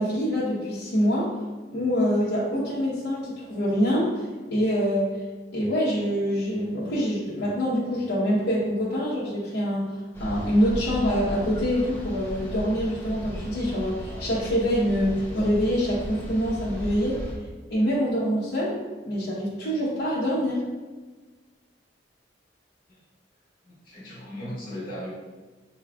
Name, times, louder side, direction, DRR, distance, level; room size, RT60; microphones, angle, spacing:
voice 1, 0.0-1.3 1.7-5.2 5.5-9.9 10.2-17.2 17.7-18.8 19.0-20.6, equal, 75° left, -9 dB, 1.0 m, -25 dB
sound 1, 10.1-17.3, equal, 15° left, 0.7 m, -36 dB
voice 2, 23.6-25.1, equal, 50° left, -12 dB, 1.3 m, -37 dB
5.7 x 3.1 x 2.3 m, 1.3 s
head